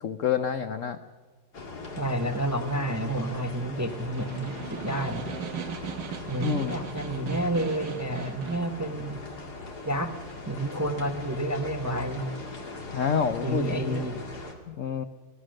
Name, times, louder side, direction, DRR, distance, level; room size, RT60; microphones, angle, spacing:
voice 1, 0.0-1.0 6.4-6.8 12.9-14.1 14.7-15.0, left 7 dB, 70° left, 10 dB, 0.7 m, -28 dB
sound 1, 1.5-14.5, left 3 dB, 50° left, 2.8 m, -40 dB
voice 2, 2.0-5.2 6.3-9.2 9.8-10.1 10.5-12.3 13.4-14.2, right 1 dB, 15° right, 6 dB, 0.7 m, -30 dB
Snare drum, 3.8-8.7, right 8 dB, 60° right, 1.7 m, -38 dB
25.5 x 17.5 x 6.4 m, 1.3 s
omnidirectional pair, 2.3 m